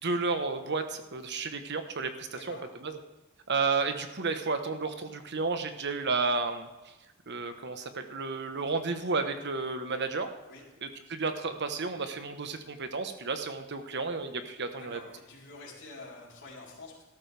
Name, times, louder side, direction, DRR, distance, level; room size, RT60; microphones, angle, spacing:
voice 1, 0.0-2.6 2.8-2.9 3.5-6.7 7.3-10.3 10.8-15.0, right 4 dB, 55° right, 8 dB, 1.2 m, -32 dB
voice 2, 2.3-2.6 10.5-10.6 14.8-17.1, left 3 dB, 60° left, -4 dB, 4.0 m, -47 dB
13.5 x 13.0 x 3.5 m, 1.1 s
head